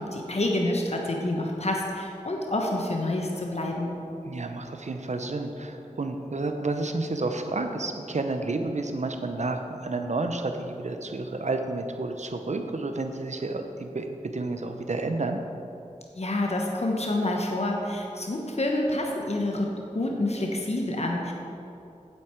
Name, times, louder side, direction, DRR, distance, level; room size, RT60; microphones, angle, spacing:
voice 1, 0.0-3.9 16.1-21.3, left 1 dB, 55° left, 0 dB, 1.2 m, -28 dB
voice 2, 4.2-15.4, right 2 dB, 65° right, 6 dB, 0.8 m, -30 dB
9.1 x 8.1 x 4.7 m, 2.8 s
wide cardioid pair, 45°, 13 cm